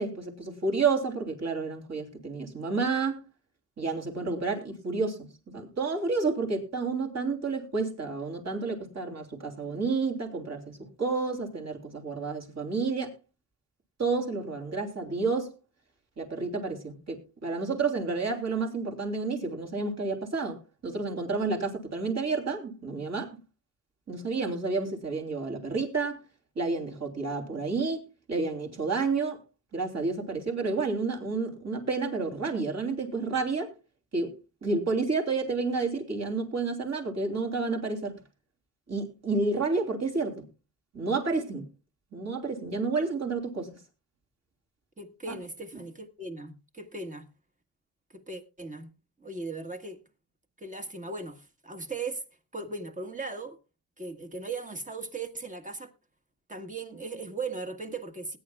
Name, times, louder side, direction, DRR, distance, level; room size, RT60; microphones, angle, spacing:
voice 1, 0.0-3.2 3.8-5.3 5.5-13.1 14.0-15.5 16.2-23.3 24.1-26.2 26.5-29.4 29.7-33.7 34.1-34.3 34.6-38.1 38.9-40.4 40.9-41.7 42.1-43.7, right 4 dB, 40° right, 3.3 m, -30 dB
voice 2, 45.0-47.2 48.1-48.9 49.2-50.0 50.6-52.2 52.5-53.6 54.0-55.9 56.5-58.4, right 3 dB, 20° right, 1.6 m, -38 dB
20.0 x 9.8 x 2.3 m
cardioid pair, 115°, 41 cm